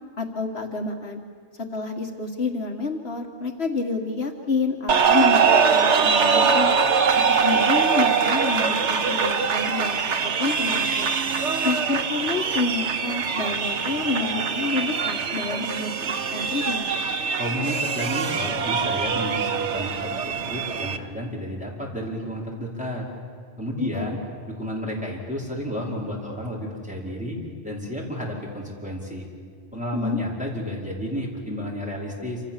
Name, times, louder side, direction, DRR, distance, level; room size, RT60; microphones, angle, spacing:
voice 1, 0.2-1.2 1.7-6.7 7.3-11.1 11.6-15.9 16.3-16.9 23.8-24.1 29.9-30.2, left 3 dB, 65° left, 4 dB, 1.8 m, -28 dB
sound 1, 4.9-21.0, right 6 dB, 80° right, 1.4 m, -23 dB
voice 2, 17.4-23.1 23.6-24.2 24.6-27.4 27.6-29.2 29.7-32.4, equal, 5° right, -3 dB, 4.9 m, -31 dB
27.0 x 27.0 x 7.4 m, 2.1 s
omnidirectional pair, 1.2 m